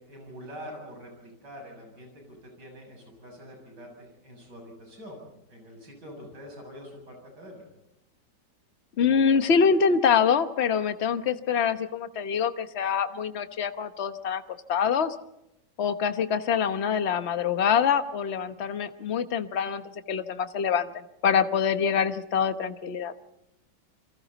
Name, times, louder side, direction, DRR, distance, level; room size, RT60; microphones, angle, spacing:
voice 1, 0.0-5.2 5.5-7.6, equal, 85° right, 2 dB, 7.8 m, -45 dB
voice 2, 9.0-14.4 14.7-15.1 15.8-23.1, left 6 dB, 45° left, 10 dB, 1.2 m, -25 dB
29.0 x 23.5 x 4.0 m, 0.88 s
omnidirectional pair, 1.8 m